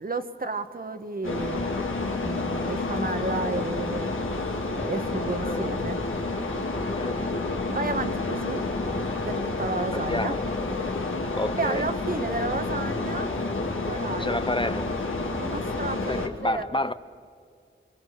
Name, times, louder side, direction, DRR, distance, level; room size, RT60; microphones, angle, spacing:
voice 1, 0.0-1.7 2.2-4.1 4.7-6.0 7.7-8.6 9.2-10.3 11.6-13.4 13.9-14.4 15.3-16.8, right 3 dB, 45° right, 1.3 m, -32 dB
sound 1, 1.2-16.3, left 3 dB, 75° left, 2.4 m, -29 dB
voice 2, 9.9-10.4 11.3-11.9 14.2-15.0 16.1-16.9, left 1 dB, 25° left, 0.6 m, -29 dB
26.0 x 24.5 x 6.6 m
wide cardioid pair, 90°, 21 cm